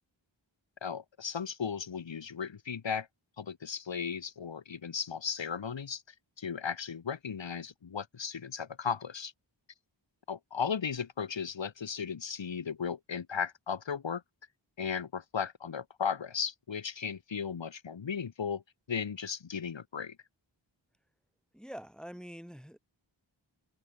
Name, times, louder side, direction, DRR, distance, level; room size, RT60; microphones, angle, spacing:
voice 1, 0.8-3.1 3.4-6.0 6.4-9.3 10.3-14.2 14.8-18.6 18.9-20.2, left 6 dB, 70° left, 1.0 m, -36 dB
voice 2, 21.5-22.8, equal, ahead, 1.7 m, -45 dB
wide cardioid pair, 40°, 46 cm